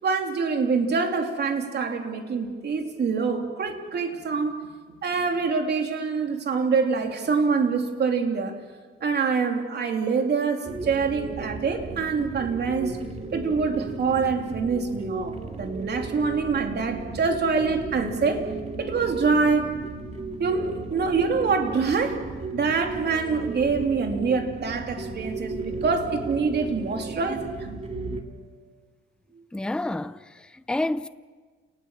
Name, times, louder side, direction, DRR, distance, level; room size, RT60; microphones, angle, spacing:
voice 1, 0.0-4.6 5.0-8.6 9.0-13.0 13.3-18.4 18.8-19.7 20.4-22.2 22.5-27.6 27.9-28.2, right 5 dB, 55° right, 3.1 m, -25 dB
sound 1, 10.6-28.2, right 3 dB, 30° right, 2.6 m, -35 dB
voice 2, 29.5-31.1, left 2 dB, 5° left, 0.6 m, -29 dB
29.0 x 19.0 x 7.4 m
cardioid pair, 95°, 21 cm